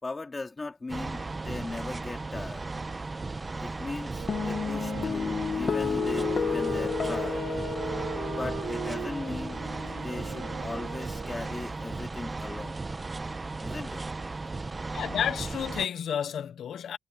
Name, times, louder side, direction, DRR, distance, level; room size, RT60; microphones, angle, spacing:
voice 1, 0.0-2.7 3.6-7.5 8.3-9.6 10.0-12.9 13.6-14.0, left 3 dB, 20° left, 3.8 m, -38 dB
sound 1, 0.9-15.9, right 3 dB, 25° right, 1.2 m, -36 dB
Wind instrument woodwind instrument, 4.1-11.9, right 9 dB, 80° right, 6.4 m, -39 dB
sound 2, 4.3-10.9, left 6 dB, 45° left, 1.4 m, -32 dB
voice 2, 14.9-17.0, left 8 dB, 75° left, 1.1 m, -31 dB
wide cardioid pair, 135°, 0 cm